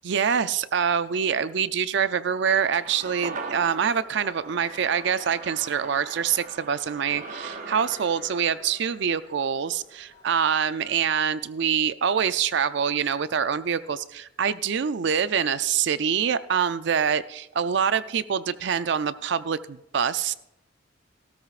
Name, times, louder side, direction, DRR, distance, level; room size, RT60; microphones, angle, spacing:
voice 1, 0.0-20.3, right 7 dB, 65° right, 14 dB, 0.4 m, -25 dB
sound 1, 2.5-11.1, left 2 dB, 35° left, 2.4 m, -51 dB
sound 2, 2.5-11.0 11.3-11.4, right 4 dB, 40° right, 0.8 m, -41 dB
16.5 x 13.0 x 2.5 m, 0.88 s
head